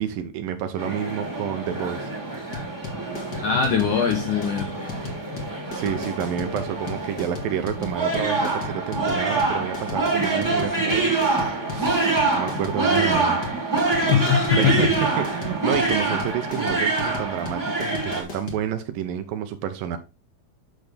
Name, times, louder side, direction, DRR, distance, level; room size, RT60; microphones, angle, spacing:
voice 1, 0.0-2.1 5.7-13.5 14.6-20.0, right 9 dB, 75° right, 2.3 m, -29 dB
sound 1, 0.8-18.2, right 3 dB, 5° right, 1.7 m, -26 dB
sound 2, 2.5-18.6, left 4 dB, 35° left, 1.8 m, -35 dB
voice 2, 3.4-5.1 14.1-14.9, left 7 dB, 70° left, 2.1 m, -22 dB
9.2 x 6.1 x 3.4 m
omnidirectional pair, 4.6 m